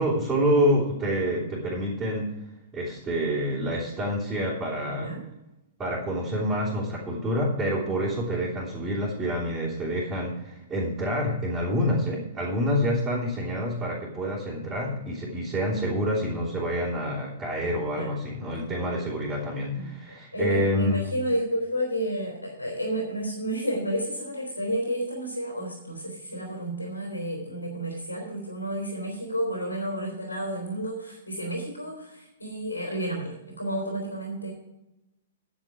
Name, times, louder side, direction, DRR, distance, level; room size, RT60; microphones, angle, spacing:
voice 1, 0.0-2.3 2.7-5.1 5.8-21.0, equal, 15° right, -8 dB, 3.2 m, -27 dB
voice 2, 4.9-5.2 17.9-18.2 18.7-18.8 19.7-34.5, right 1 dB, 85° left, 1 dB, 3.6 m, -31 dB
10.5 x 8.9 x 5.0 m, 0.92 s
figure-of-eight pair, 110°, 0 cm